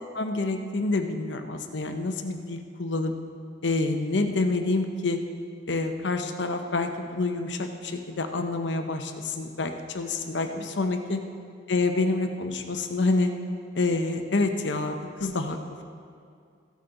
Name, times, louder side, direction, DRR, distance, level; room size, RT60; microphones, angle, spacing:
voice 1, 0.1-3.1 3.6-5.2 5.7-11.2 11.7-13.3 13.7-15.6, left 3 dB, 75° left, 5 dB, 0.9 m, -27 dB
15.5 x 8.3 x 3.9 m, 2.3 s
head